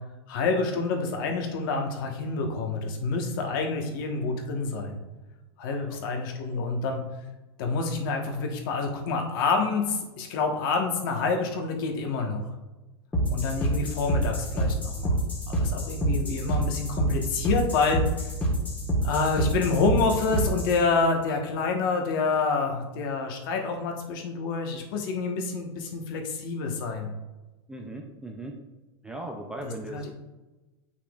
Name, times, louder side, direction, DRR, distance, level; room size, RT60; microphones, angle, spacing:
voice 1, 0.3-5.0 5.6-7.0 7.6-12.5 13.3-15.2 15.5-18.0 19.0-27.1 29.6-30.1, left 4 dB, 50° left, 3 dB, 1.2 m, -28 dB
sound 1, 13.1-20.8, equal, 10° left, 1.3 m, -27 dB
voice 2, 27.7-28.6 29.0-30.1, right 1 dB, 5° right, 1 dB, 0.3 m, -38 dB
8.3 x 5.7 x 2.3 m, 1.1 s
supercardioid pair, 160°, 14 cm